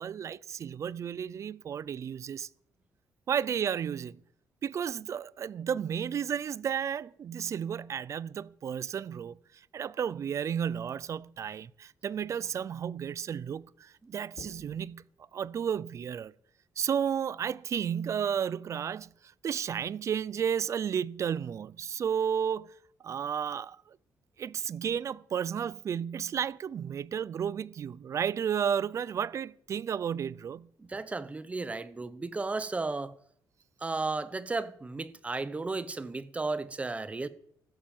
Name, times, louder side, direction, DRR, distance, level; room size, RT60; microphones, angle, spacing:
voice 1, 0.0-2.5 3.3-4.2 4.6-9.4 9.7-16.3 16.8-19.1 19.4-22.7 23.0-24.0 24.4-30.7, right 8 dB, 45° right, 0.6 m, -32 dB
sound 1, 14.3-14.9 16.9-17.1, left 3 dB, 65° left, 4.9 m, -51 dB
voice 2, 30.8-33.1 33.8-37.3, right 3 dB, 20° right, 1.1 m, -34 dB
15.5 x 13.0 x 7.3 m
cardioid pair, 135°, 7 cm